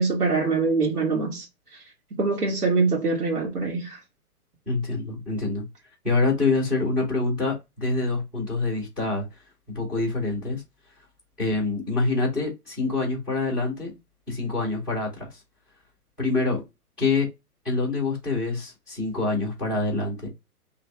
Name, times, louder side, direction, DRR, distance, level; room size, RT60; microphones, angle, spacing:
voice 1, 0.0-1.5 2.2-4.0, right 4 dB, 75° right, 1.3 m, -24 dB
voice 2, 4.7-5.6 6.0-9.3 9.7-10.6 11.4-13.9 14.3-15.4 16.2-16.6 17.0-17.3 17.6-20.3, left 3 dB, 5° right, 0.6 m, -26 dB
3.2 x 2.5 x 3.2 m
figure-of-eight pair, 130°, 46 cm